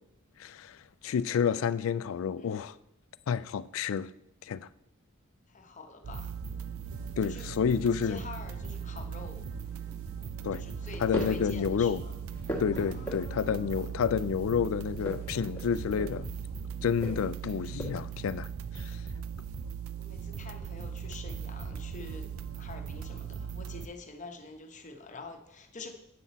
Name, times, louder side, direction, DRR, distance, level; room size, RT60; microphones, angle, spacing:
voice 1, 0.4-0.8 1.0-2.7 3.3-4.1 4.4-4.7 7.2-8.2 10.4-10.6 11.0-12.0 12.6-16.3 16.8-18.5 18.7-19.0, left 7 dB, 70° left, 0.3 m, -29 dB
voice 2, 2.4-2.7 5.5-6.3 7.2-7.5 7.9-9.5 10.5-12.1 12.7-13.9 16.9-17.2 20.0-22.3 22.6-25.9, left 3 dB, 35° left, 0.9 m, -47 dB
sound 1, 6.0-23.9, right 7 dB, 80° right, 0.4 m, -39 dB
sound 2, 6.4-17.1, equal, 15° right, 0.9 m, -55 dB
sound 3, 9.6-10.0 10.8-11.5 11.9-13.6 14.9-16.3 17.0-18.2, equal, 10° left, 1.4 m, -40 dB
8.5 x 6.0 x 4.0 m
head